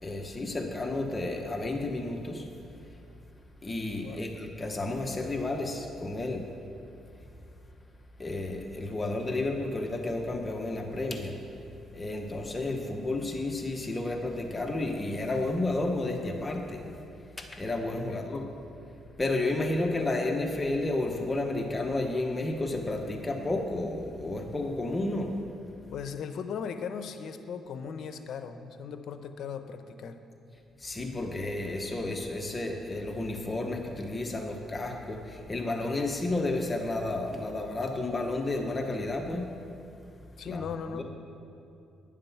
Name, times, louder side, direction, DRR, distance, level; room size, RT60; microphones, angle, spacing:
voice 1, 0.0-2.5 3.6-6.5 8.2-11.4 11.9-16.9 17.3-18.4 19.2-25.4 30.8-39.5 40.4-40.7 40.9-41.0, left 2 dB, 25° left, 3 dB, 0.9 m, -31 dB
voice 2, 17.9-18.3 25.9-30.2 40.4-41.0, left 6 dB, 70° left, 8 dB, 0.7 m, -38 dB
10.0 x 7.5 x 5.7 m, 2.7 s
cardioid pair, 90°, 0 cm